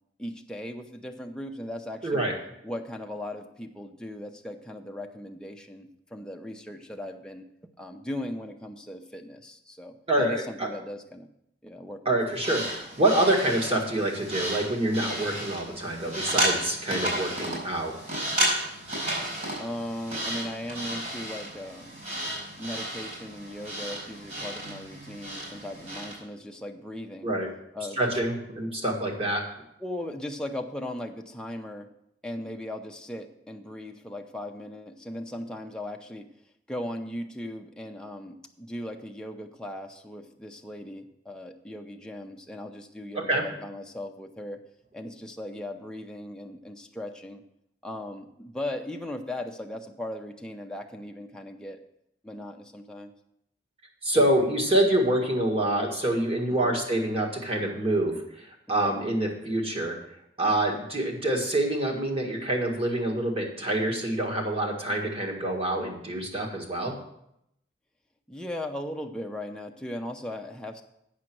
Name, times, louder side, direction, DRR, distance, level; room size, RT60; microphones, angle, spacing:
voice 1, 0.2-2.3 2.6-7.4 7.8-11.3 11.6-12.4 17.0-17.4 19.6-22.0 22.6-27.3 27.7-28.2 29.8-31.9 32.2-36.3 36.7-44.6 44.9-47.4 47.8-51.8 52.2-53.1 56.5-56.8 58.7-59.1 60.4-60.9 68.3-70.8, left 1 dB, 5° left, 3 dB, 0.7 m, -38 dB
voice 2, 2.0-2.4 10.1-10.7 12.0-17.9 27.2-27.5 28.0-29.4 43.1-43.4 54.0-60.0 60.4-67.0, right 1 dB, 35° right, 0 dB, 1.8 m, -26 dB
sound 1, 12.3-26.2, right 1 dB, 50° right, 4.5 m, -33 dB
8.6 x 6.7 x 6.1 m, 0.78 s
head